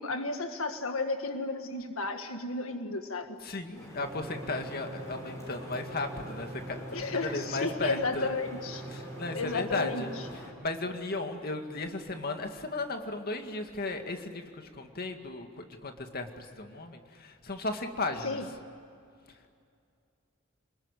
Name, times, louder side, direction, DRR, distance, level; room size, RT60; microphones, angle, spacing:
voice 1, 0.0-3.4 6.9-8.8 9.3-10.3 18.2-18.5, left 3 dB, 85° left, 6 dB, 1.7 m, -33 dB
voice 2, 3.4-6.8 7.2-8.3 9.2-10.1 10.6-18.4, left 3 dB, 50° left, 5 dB, 2.1 m, -35 dB
sound 1, 3.7-10.5, equal, 15° left, 7.1 m, -46 dB
sound 2, 4.0-10.3, right 1 dB, 35° right, 1.3 m, -44 dB
28.0 x 20.5 x 9.9 m, 2.4 s
head